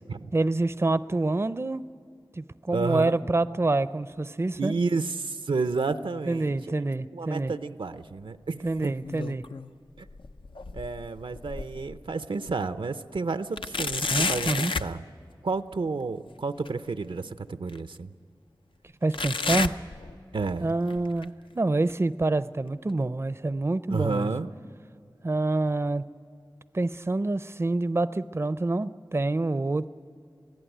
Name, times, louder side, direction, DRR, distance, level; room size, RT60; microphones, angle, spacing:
voice 1, 0.3-1.9 2.4-4.7 6.3-7.5 8.6-9.4 14.1-14.7 19.0-19.8 20.6-24.3 25.2-26.1 26.7-29.9, right 2 dB, 30° right, 15 dB, 0.5 m, -27 dB
voice 2, 2.7-3.1 4.6-6.5 7.1-9.0 10.0-10.1 10.7-15.0 15.4-18.1 20.3-20.8 23.9-24.6, right 4 dB, 85° right, 11 dB, 0.6 m, -31 dB
sound 1, 8.8-9.7 10.1-12.0 12.5-12.6 13.6-15.0 16.7-16.8 17.7-17.8 19.1-20.5 20.9-21.2 21.9-22.0 22.9-23.0, left 4 dB, 90° left, 0.5 m, -31 dB
22.5 x 15.5 x 9.1 m, 2.4 s
wide cardioid pair, 45°, 8 cm